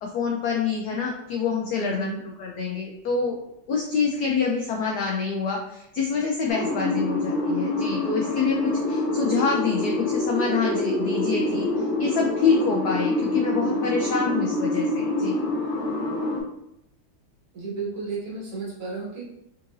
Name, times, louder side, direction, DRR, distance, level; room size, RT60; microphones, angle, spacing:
voice 1, 0.0-2.1 2.4-3.4 3.7-11.7 12.0-15.4, left 5 dB, 75° left, 0 dB, 0.9 m, -26 dB
voice 2, 1.8-2.2 17.5-19.2, right 4 dB, 50° right, -5 dB, 1.6 m, -33 dB
sound 1, 6.5-16.4, left 2 dB, 35° left, 0.9 m, -26 dB
3.9 x 3.7 x 2.7 m, 0.83 s
omnidirectional pair, 2.2 m